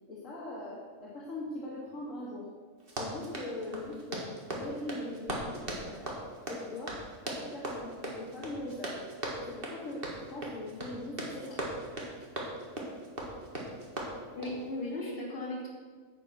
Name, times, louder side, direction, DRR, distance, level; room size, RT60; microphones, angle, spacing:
voice 1, 0.1-2.5 3.0-6.1 6.5-9.0 9.4-11.6, left 1 dB, 60° left, -6 dB, 2.2 m, -41 dB
Run, 2.8-14.6, right 1 dB, 40° right, 1.9 m, -39 dB
voice 2, 14.3-15.7, left 1 dB, 40° left, -5 dB, 3.3 m, -36 dB
9.5 x 8.3 x 6.2 m, 1.6 s
omnidirectional pair, 1.6 m